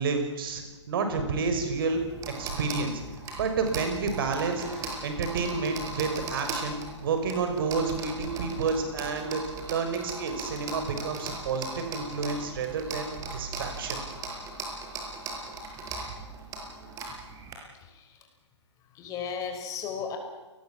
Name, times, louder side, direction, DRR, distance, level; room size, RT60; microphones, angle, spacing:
voice 1, 0.0-2.0 2.4-3.0 3.3-4.6 5.0-9.4 9.7-14.0, right 4 dB, 50° right, 6 dB, 6.0 m, -30 dB
sound 1, 1.5-17.5, right 3 dB, 20° right, 5.8 m, -38 dB
voice 2, 17.7-18.2 18.9-20.2, left 6 dB, 20° left, 5 dB, 5.1 m, -36 dB
28.5 x 20.0 x 7.5 m, 1.2 s
figure-of-eight pair, 125°, 15 cm